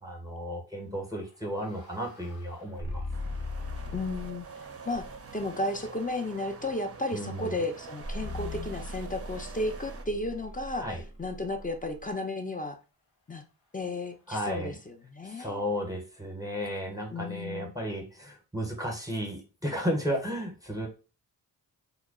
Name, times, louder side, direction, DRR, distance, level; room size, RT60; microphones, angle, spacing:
voice 1, 0.0-3.0 7.1-7.6 10.8-11.0 14.3-14.8 15.2-20.9, equal, 10° right, 2 dB, 0.8 m, -34 dB
sound 1, 1.1-4.4 4.9-5.4 8.0-12.1, left 2 dB, 70° left, 1.1 m, -40 dB
sound 2, 3.1-10.0, right 5 dB, 35° right, 0.5 m, -46 dB
voice 2, 3.9-4.5 4.9-5.0 5.3-10.9 11.2-12.8 13.3-13.4 13.7-15.6 17.1-17.7, left 2 dB, 20° left, 6 dB, 0.4 m, -33 dB
2.1 x 2.0 x 3.6 m, 0.34 s
cardioid pair, 45°, 46 cm